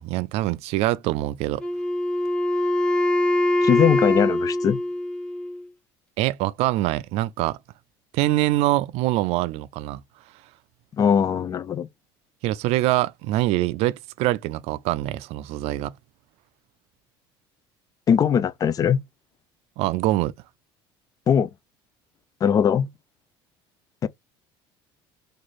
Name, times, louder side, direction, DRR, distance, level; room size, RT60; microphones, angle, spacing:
voice 1, 0.0-1.6 6.2-7.6 8.1-10.0 12.4-15.9 19.8-20.3, right 16 dB, 65° right, 0.4 m, -24 dB
Wind instrument woodwind instrument, 1.6-5.6, left 1 dB, 10° left, 1.2 m, -23 dB
voice 2, 3.6-4.8 11.0-11.9 18.1-19.0 21.3-21.5 22.4-22.9 24.0-24.1, left 8 dB, 35° left, 0.4 m, -20 dB
3.1 x 2.5 x 4.0 m
supercardioid pair, 105°, 11 cm